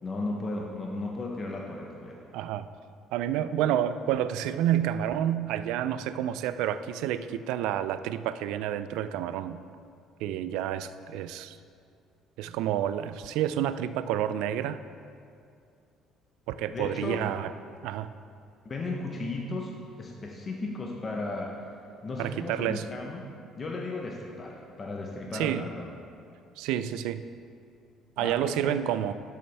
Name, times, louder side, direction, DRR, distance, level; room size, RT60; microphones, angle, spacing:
voice 1, 0.0-2.2 16.7-17.2 18.6-19.7 20.0-21.8 22.0-23.3 23.6-25.9 28.2-28.8, left 2 dB, 25° left, 0 dB, 0.7 m, -35 dB
voice 2, 2.3-2.7 3.1-9.6 10.2-11.6 12.4-14.8 16.5-17.5 17.8-18.1 22.2-22.8 25.3-25.6 26.6-27.2 28.2-29.1, right 11 dB, 85° right, 13 dB, 0.3 m, -29 dB
12.0 x 6.9 x 3.4 m, 2.4 s
cardioid pair, 145°, 0 cm